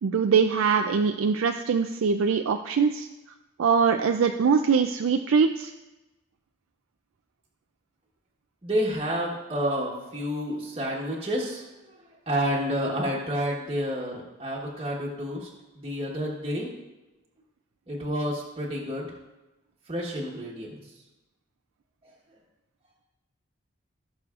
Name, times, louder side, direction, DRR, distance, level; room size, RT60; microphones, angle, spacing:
voice 1, 0.0-3.1 3.6-5.7, right 6 dB, 80° right, 6 dB, 0.4 m, -22 dB
voice 2, 8.6-11.6 12.3-15.5 15.8-16.7 17.9-19.1 19.9-20.8, equal, 25° right, -4 dB, 1.2 m, -29 dB
16.5 x 6.3 x 2.4 m, 1.0 s
head